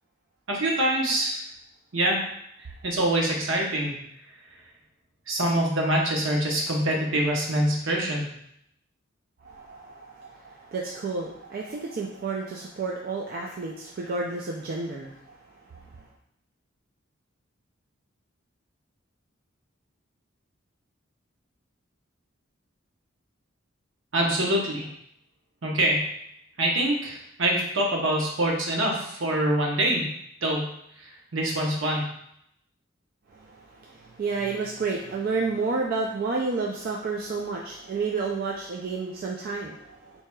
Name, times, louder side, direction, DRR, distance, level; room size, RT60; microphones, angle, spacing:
voice 1, 0.5-1.4 1.9-2.2 2.8-4.0 5.3-8.3 24.1-24.9 25.6-26.1 26.6-30.1 30.4-30.7 31.0-32.1, right 1 dB, 70° right, -1 dB, 0.9 m, -25 dB
voice 2, 9.4-15.8 33.3-40.2, right 4 dB, 45° right, -2 dB, 0.3 m, -31 dB
4.5 x 2.7 x 2.2 m, 0.73 s
head